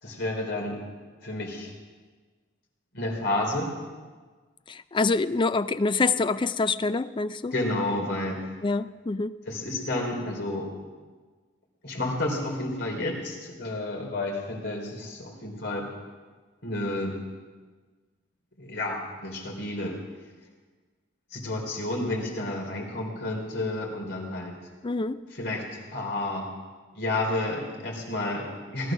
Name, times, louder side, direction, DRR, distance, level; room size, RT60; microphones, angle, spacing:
voice 1, 0.0-0.8 1.2-1.7 2.9-3.7 7.5-8.5 9.4-10.7 11.8-15.9 16.6-17.2 18.6-20.0 21.3-24.5 25.3-26.5 26.9-28.9, left 2 dB, 60° left, 0 dB, 3.7 m, -30 dB
voice 2, 4.7-7.5 8.6-9.3 24.8-25.2, left 3 dB, 25° left, 13 dB, 0.4 m, -26 dB
18.0 x 12.0 x 6.2 m, 1.4 s
head